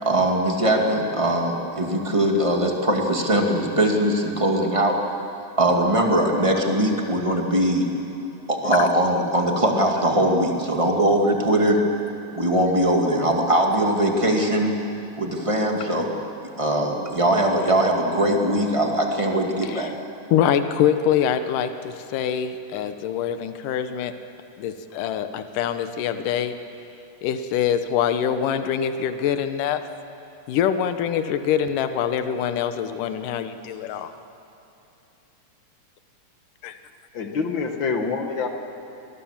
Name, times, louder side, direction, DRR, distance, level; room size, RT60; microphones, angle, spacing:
voice 1, 0.0-4.9 5.6-7.9 8.5-11.8 12.4-14.7 15.2-16.1 16.6-19.9, right 1 dB, 15° right, 1 dB, 1.3 m, -21 dB
voice 2, 20.3-24.1 24.6-26.5 27.2-29.8 30.5-34.1 36.6-36.8, left 9 dB, 85° left, 9 dB, 2.6 m, -24 dB
voice 3, 37.1-38.5, left 4 dB, 50° left, 5 dB, 1.5 m, -26 dB
25.5 x 20.0 x 7.3 m, 2.9 s
omnidirectional pair, 3.7 m